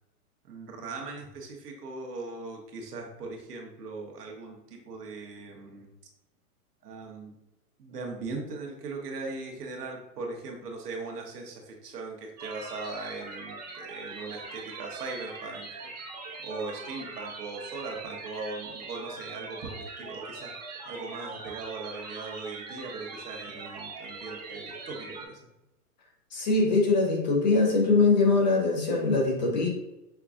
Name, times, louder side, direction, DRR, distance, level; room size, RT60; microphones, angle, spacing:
voice 1, 0.4-5.8 6.8-7.3 7.8-15.9 16.4-20.5 20.8-25.4, right 3 dB, 80° right, 1 dB, 1.2 m, -39 dB
sound 1, 12.4-25.3, right 3 dB, 30° right, 0.5 m, -41 dB
voice 2, 26.3-29.7, left 3 dB, 30° left, 1 dB, 0.5 m, -22 dB
5.7 x 2.4 x 2.4 m, 0.91 s
hypercardioid pair, 155°, 46 cm